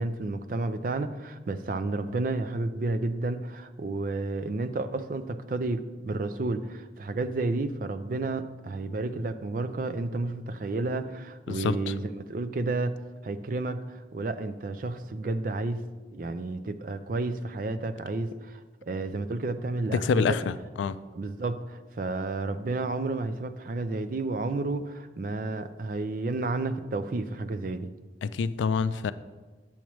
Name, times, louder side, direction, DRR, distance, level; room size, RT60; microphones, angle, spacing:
voice 1, 0.0-13.0 13.2-15.8 16.1-20.4 21.1-27.9, right 2 dB, 50° right, 10 dB, 0.4 m, -31 dB
voice 2, 11.5-11.9 20.0-21.0 28.2-29.1, left 5 dB, 90° left, 14 dB, 0.3 m, -27 dB
8.5 x 7.1 x 3.1 m, 1.3 s
head